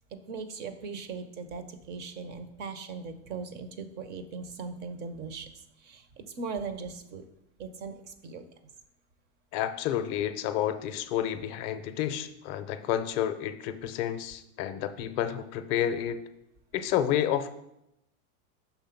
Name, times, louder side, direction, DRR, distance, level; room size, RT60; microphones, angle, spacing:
voice 1, 0.1-7.2 7.6-8.5, right 4 dB, 25° right, 10 dB, 0.4 m, -39 dB
voice 2, 9.5-16.2 16.7-17.5, left 10 dB, 45° left, 10 dB, 0.5 m, -30 dB
5.8 x 3.5 x 5.7 m, 0.83 s
supercardioid pair, 125°, 44 cm